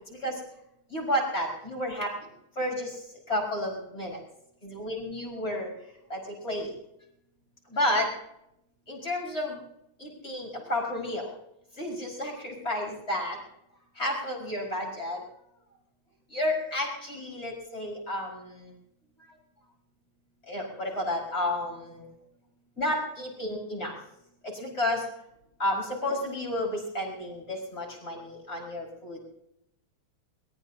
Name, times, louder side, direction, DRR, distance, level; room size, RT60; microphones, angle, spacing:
voice 1, 0.1-0.4 0.9-2.1 2.6-3.0 3.3-4.2 4.6-5.7 6.1-6.7 7.7-8.1 8.9-9.6 10.0-11.3 11.8-13.4 14.0-15.2 16.3-18.7 20.5-22.1 22.8-23.9 24.4-25.0 25.6-29.2, left 1 dB, 30° left, -2 dB, 5.6 m, -31 dB
22.5 x 19.5 x 2.8 m, 0.80 s
omnidirectional pair, 2.4 m